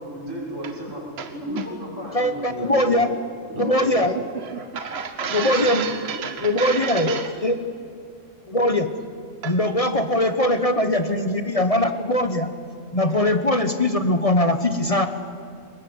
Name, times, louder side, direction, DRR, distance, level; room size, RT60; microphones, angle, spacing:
voice 1, 0.0-1.0 1.3-3.1 3.5-4.1 5.5-5.6, equal, 80° right, -3 dB, 6.8 m, -33 dB
voice 2, 1.2-1.7 3.6-3.7 4.3-7.3 9.4-9.6, right 6 dB, 55° right, 9 dB, 1.1 m, -31 dB
voice 3, 2.1-3.1 3.6-4.1 5.3-5.9 6.4-7.6 8.5-8.9 9.4-12.5 12.9-15.1, left 1 dB, 30° left, 8 dB, 1.1 m, -21 dB
23.0 x 20.5 x 9.6 m, 2.3 s
omnidirectional pair, 1.3 m